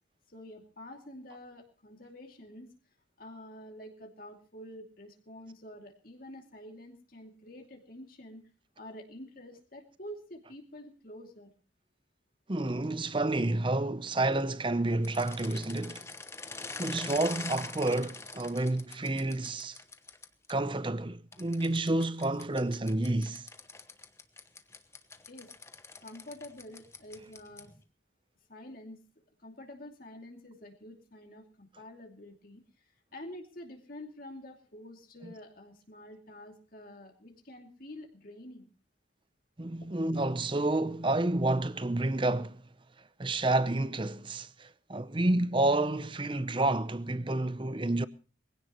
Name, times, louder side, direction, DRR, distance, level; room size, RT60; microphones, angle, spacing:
voice 1, 0.3-2.7 3.2-8.4 8.8-11.5 25.3-25.5 26.0-27.7 28.5-29.0 29.4-38.7, left 1 dB, 45° left, 2.7 m, -48 dB
voice 2, 12.5-16.1 16.8-19.8 20.5-23.5 39.6-42.6 43.2-48.1, right 2 dB, 25° right, 0.7 m, -29 dB
sound 1, 15.0-20.5 21.3-27.8, left 3 dB, 15° left, 1.1 m, -44 dB
22.5 x 16.5 x 3.1 m
head